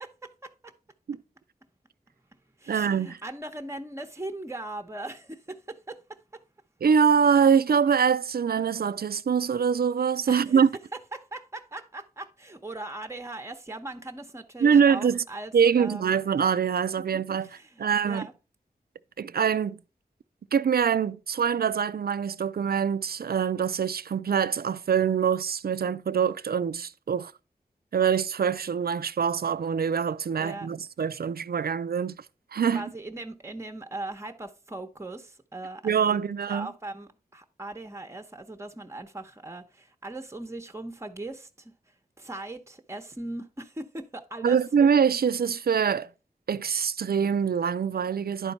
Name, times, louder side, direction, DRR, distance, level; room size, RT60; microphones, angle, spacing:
voice 1, 0.0-0.7 2.6-6.4 10.3-10.6 11.1-16.1 17.1-18.3 30.4-30.7 32.7-41.7 42.2-44.6, right 2 dB, 15° right, 0.9 m, -39 dB
voice 2, 2.7-3.2 6.8-10.7 14.6-15.2 15.5-17.5 17.8-18.3 19.2-19.8 20.5-27.3 27.9-32.2 32.5-32.9 35.8-36.7 44.4-46.1 46.5-48.5, right 7 dB, 80° right, 0.4 m, -24 dB
10.5 x 4.5 x 4.1 m
wide cardioid pair, 75°, 16 cm